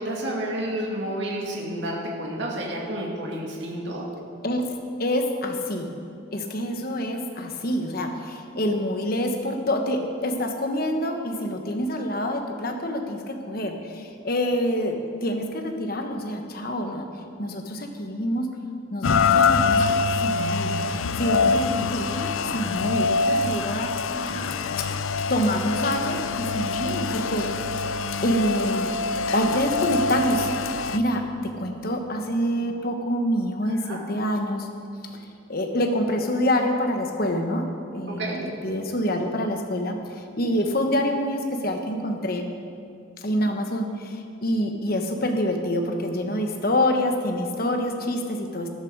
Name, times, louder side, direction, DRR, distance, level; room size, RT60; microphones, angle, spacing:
voice 1, 0.0-4.1 33.8-34.0 38.1-38.4, right 1 dB, 60° right, -2 dB, 2.2 m, -30 dB
voice 2, 5.0-5.9 6.3-17.1 17.4-18.5 18.9-24.9 25.3-27.9 28.2-34.7 35.1-42.5 43.2-48.7, equal, 45° left, 4 dB, 1.2 m, -27 dB
Rain, 19.0-31.0, left 4 dB, 80° left, 0.5 m, -25 dB
12.5 x 12.5 x 4.7 m, 2.4 s
head